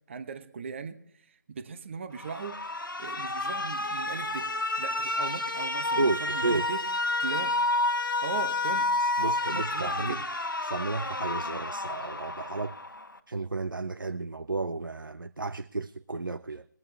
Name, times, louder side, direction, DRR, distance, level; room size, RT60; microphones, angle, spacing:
voice 1, 0.1-2.6 3.0-4.5 4.8-6.8 7.2-7.5 8.2-8.9 9.2-10.3, right 5 dB, 35° right, 0.9 m, -38 dB
Alarm, 2.2-13.2, left 2 dB, 85° left, 1.2 m, -30 dB
voice 2, 6.0-6.7 9.0-10.2 10.6-12.8 13.3-16.6, right 3 dB, 90° right, 0.5 m, -32 dB
22.0 x 8.8 x 3.3 m
figure-of-eight pair, 150°, 11 cm